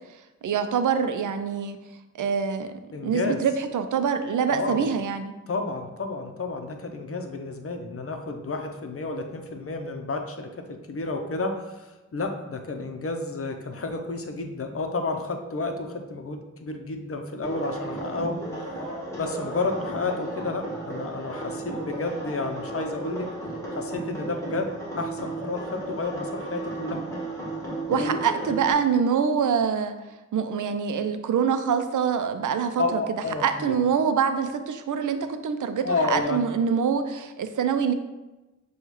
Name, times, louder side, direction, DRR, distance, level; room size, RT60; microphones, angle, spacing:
voice 1, 0.4-1.8 2.2-2.7 3.0-5.3 27.9-30.0 30.3-33.0 33.4-37.9, right 6 dB, 85° right, 8 dB, 0.5 m, -25 dB
voice 2, 2.9-3.4 4.5-4.9 5.5-18.4 19.1-23.3 23.7-27.0 27.9-28.2 32.8-33.8 35.8-36.4, left 3 dB, 50° left, 4 dB, 0.6 m, -31 dB
sound 1, 17.4-28.7, right 2 dB, 10° left, 1.3 m, -34 dB
6.8 x 2.3 x 3.1 m, 1.1 s
wide cardioid pair, 70°, 30 cm